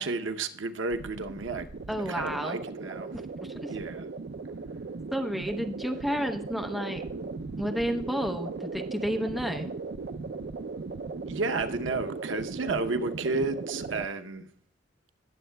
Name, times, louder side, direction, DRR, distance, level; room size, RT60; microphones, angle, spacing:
voice 1, 0.0-1.7 2.1-3.2 3.7-4.1 11.3-14.5, right 3 dB, 90° right, 0.8 m, -32 dB
sound 1, 0.9-14.0, right 4 dB, 60° right, 0.5 m, -38 dB
voice 2, 1.9-2.6 3.1-3.7 5.1-7.0 7.6-9.7, equal, ahead, 0.7 m, -31 dB
19.0 x 7.3 x 2.2 m
head